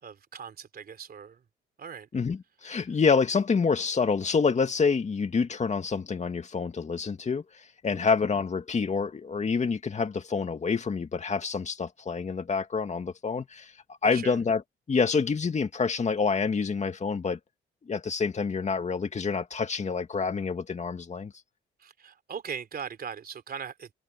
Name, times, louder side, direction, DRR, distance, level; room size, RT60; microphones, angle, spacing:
voice 1, 0.0-1.4 1.8-2.1 7.8-8.0 14.0-14.4 21.8-23.9, right 7 dB, 50° right, 3.4 m, -39 dB
voice 2, 2.1-13.7 14.0-14.6 14.9-17.4 17.9-21.3, left 5 dB, 35° left, 2.3 m, -27 dB
open air
cardioid pair, 90°, 20 cm